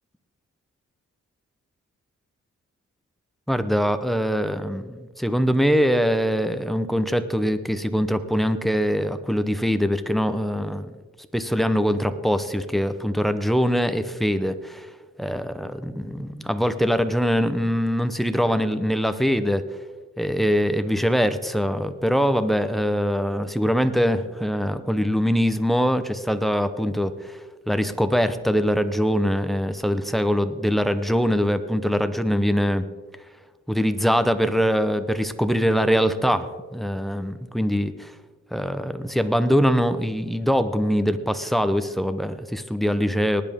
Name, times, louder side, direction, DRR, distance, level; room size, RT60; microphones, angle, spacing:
voice 1, 3.5-10.9 11.3-14.9 15.2-19.6 20.2-27.4 27.7-32.9 33.7-38.1 38.5-43.4, equal, ahead, 11 dB, 0.8 m, -23 dB
19.0 x 10.5 x 3.6 m, 1.3 s
cardioid pair, 85°, 31 cm